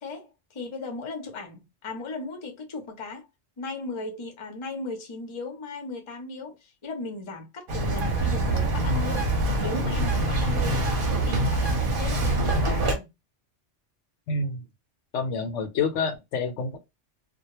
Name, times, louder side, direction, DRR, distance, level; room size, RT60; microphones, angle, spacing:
voice 1, 0.0-3.3 3.6-11.0 11.3-13.1, left 3 dB, 35° left, 0.6 m, -37 dB
Bird vocalization bird call bird song, 7.7-12.9, right 2 dB, 50° right, 0.8 m, -24 dB
voice 2, 14.3-14.6 15.1-16.8, left 4 dB, 80° left, 0.9 m, -28 dB
2.2 x 2.1 x 2.9 m
omnidirectional pair, 1.3 m